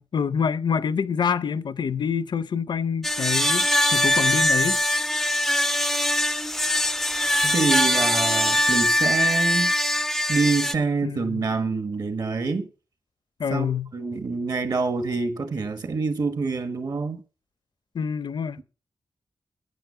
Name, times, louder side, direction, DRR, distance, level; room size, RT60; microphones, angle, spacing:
voice 1, 0.0-4.8 11.0-11.4 13.4-13.9 17.9-18.6, left 6 dB, 70° left, 0.7 m, -26 dB
sound 1, 3.0-10.7, left 1 dB, 5° left, 0.5 m, -22 dB
voice 2, 7.4-9.7 10.3-12.7 13.5-17.2, right 4 dB, 55° right, 1.6 m, -26 dB
9.4 x 9.2 x 5.7 m
wide cardioid pair, 150°, 8 cm